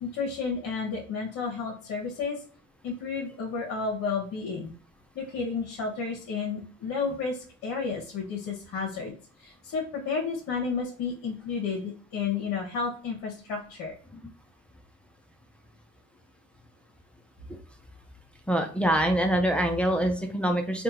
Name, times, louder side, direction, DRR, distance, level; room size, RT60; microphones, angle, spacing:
voice 1, 0.0-2.4 2.8-4.7 5.1-14.0, left 5 dB, 50° left, -1 dB, 1.0 m, -32 dB
voice 2, 18.5-20.8, right 1 dB, 5° left, 4 dB, 0.5 m, -25 dB
3.5 x 2.3 x 2.8 m, 0.42 s
hypercardioid pair, 70°, 40 cm